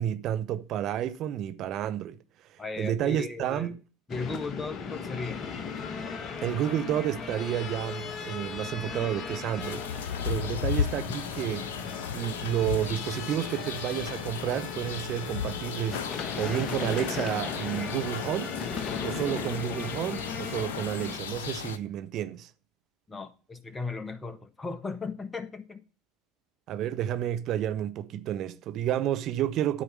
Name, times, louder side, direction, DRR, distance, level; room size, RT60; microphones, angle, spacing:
voice 1, 0.0-2.2 2.5-3.7 6.4-11.8 12.1-16.1 16.4-18.6 19.0-22.5 26.7-29.8, right 11 dB, 50° right, 1.0 m, -30 dB
voice 2, 2.6-3.8 4.1-5.4 23.1-25.8, left 4 dB, 15° left, 1.4 m, -36 dB
sound 1, 4.1-21.2, left 5 dB, 40° left, 1.4 m, -37 dB
sound 2, 9.6-21.8, left 8 dB, 75° left, 0.9 m, -35 dB
12.5 x 4.9 x 7.5 m
hypercardioid pair, 75°, 0 cm